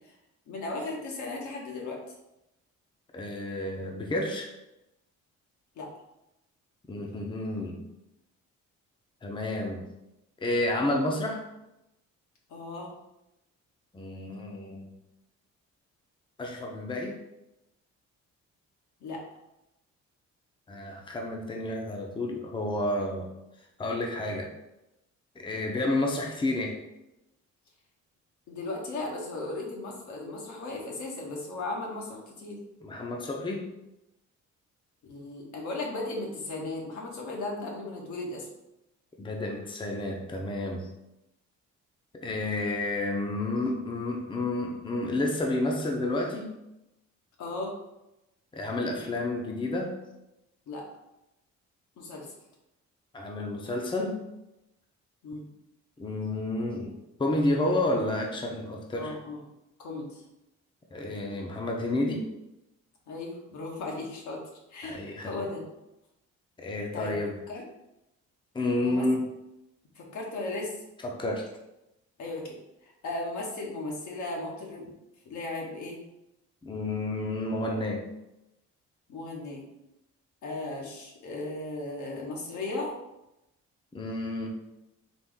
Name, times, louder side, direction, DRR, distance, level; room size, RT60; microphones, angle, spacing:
voice 1, 0.5-2.0 5.8-5.9 12.5-12.9 19.0-19.2 28.5-32.6 35.1-38.5 47.4-47.7 50.7-50.8 52.0-52.3 55.2-55.5 58.9-59.4 59.8-60.2 63.1-64.4 64.7-65.6 66.9-67.2 67.5-67.6 68.8-69.0 69.9-70.8 72.2-72.6 72.8-74.9 75.2-76.0 79.1-79.6 80.4-83.0, left 2 dB, 75° left, -1 dB, 1.1 m, -36 dB
voice 2, 3.1-4.5 6.9-7.8 9.2-9.9 10.4-11.4 13.9-14.9 16.4-17.2 20.7-23.3 23.8-24.5 25.4-26.8 32.8-33.7 39.2-40.9 42.1-46.5 48.5-50.0 53.1-54.2 56.0-59.2 60.9-62.3 64.8-65.4 66.6-67.3 68.5-69.3 71.0-71.5 76.6-78.0 83.9-84.5, left 2 dB, 15° left, 1 dB, 0.6 m, -30 dB
4.1 x 2.5 x 3.6 m, 0.91 s
cardioid pair, 90°, 30 cm